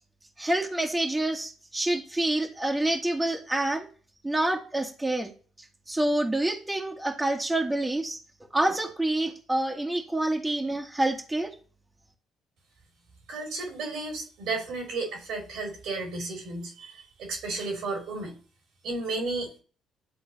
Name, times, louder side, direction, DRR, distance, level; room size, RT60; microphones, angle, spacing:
voice 1, 0.4-3.9 4.2-5.3 5.9-8.2 8.5-11.5, right 1 dB, 15° right, 2 dB, 1.5 m, -27 dB
voice 2, 13.3-18.4 18.8-19.6, right 3 dB, 70° right, 2 dB, 2.5 m, -33 dB
11.0 x 3.8 x 2.7 m, 0.39 s
hypercardioid pair, 55°, 0 cm